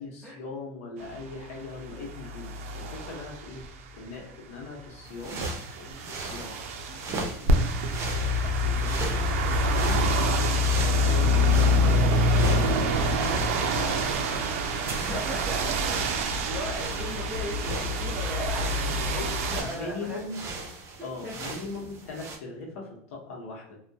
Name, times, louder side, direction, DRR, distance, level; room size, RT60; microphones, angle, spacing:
voice 1, 0.0-3.6 3.9-5.5 5.8-6.5 7.1-10.2 10.7-11.8 12.4-15.1 18.9-19.3 19.6-20.4 21.0-23.8, left 3 dB, 85° left, -1 dB, 0.7 m, -40 dB
sound 1, 1.0-3.9 5.2-19.6, left 1 dB, 90° right, 0.4 m, -26 dB
sound 2, 5.0-22.4, right 3 dB, 40° right, 0.6 m, -39 dB
voice 2, 14.9-15.8 16.1-20.2 21.0-21.3, equal, ahead, -7 dB, 0.7 m, -38 dB
2.2 x 2.1 x 2.6 m, 0.70 s
supercardioid pair, 115°, 7 cm